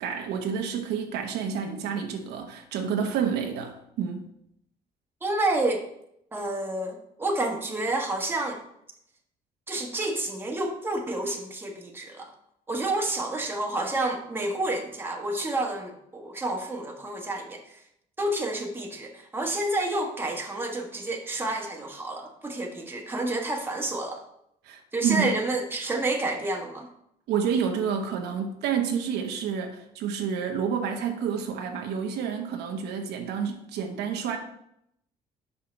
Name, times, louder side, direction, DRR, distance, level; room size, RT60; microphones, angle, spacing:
voice 1, 0.0-4.2 24.6-25.3 27.3-34.4, right 7 dB, 85° right, 3 dB, 1.1 m, -29 dB
voice 2, 5.2-5.8 6.3-8.6 9.7-12.3 12.7-17.8 18.2-24.2 24.9-26.9, right 2 dB, 15° right, 0 dB, 1.3 m, -29 dB
5.6 x 5.6 x 4.4 m, 0.75 s
cardioid pair, 110°, 17 cm